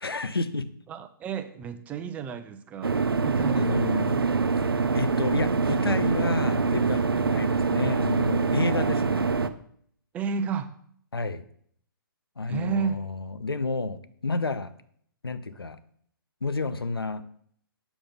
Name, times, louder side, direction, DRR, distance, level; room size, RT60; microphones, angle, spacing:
voice 1, 0.0-0.7 3.6-4.2 4.9-9.3 11.1-11.5 12.4-14.7 15.2-15.8 16.4-17.2, left 3 dB, 90° left, 13 dB, 0.6 m, -30 dB
voice 2, 0.9-4.2 10.1-10.7 12.5-13.0, right 6 dB, 10° right, 9 dB, 0.4 m, -32 dB
sound 1, 2.8-9.5, right 4 dB, 85° right, 0.5 m, -25 dB
7.1 x 5.1 x 3.5 m, 0.64 s
figure-of-eight pair, 130°, 12 cm